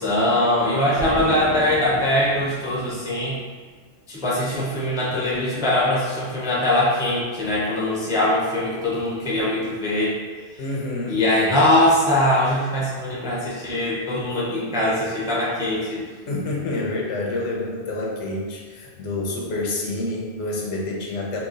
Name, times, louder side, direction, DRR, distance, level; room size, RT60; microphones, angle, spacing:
voice 1, 0.0-3.4 4.1-10.2 10.5-10.6 11.1-16.0, left 1 dB, 5° right, -7 dB, 0.4 m, -22 dB
Explosion, 1.0-3.6, right 2 dB, 65° right, 0.9 m, -33 dB
voice 2, 10.6-11.7 16.3-21.4, left 2 dB, 80° left, -2 dB, 1.0 m, -28 dB
2.9 x 2.2 x 3.7 m, 1.5 s
omnidirectional pair, 1.2 m